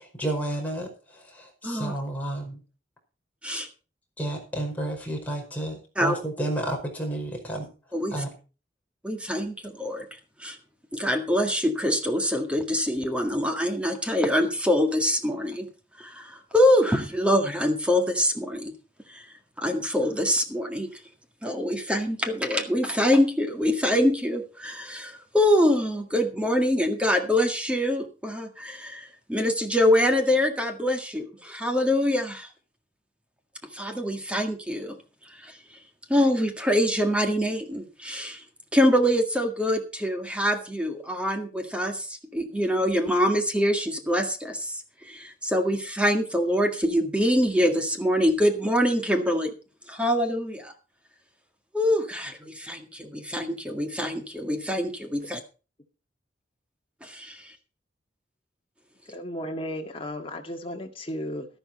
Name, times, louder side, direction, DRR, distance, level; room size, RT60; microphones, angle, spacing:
voice 1, 0.0-2.6 4.2-7.7 8.1-8.3, right 1 dB, 10° left, 5.1 m, -31 dB
voice 2, 9.0-10.1 10.4-10.6 10.9-15.7 16.0-18.7 19.1-19.2 19.6-20.9 21.4-32.5 33.7-35.0 35.3-35.6 36.1-38.4 38.7-49.5 49.9-50.7 51.7-55.4 57.0-57.6, equal, 5° right, 1.8 m, -25 dB
voice 3, 59.1-61.5, equal, 30° left, 2.0 m, -34 dB
12.5 x 11.5 x 4.3 m
head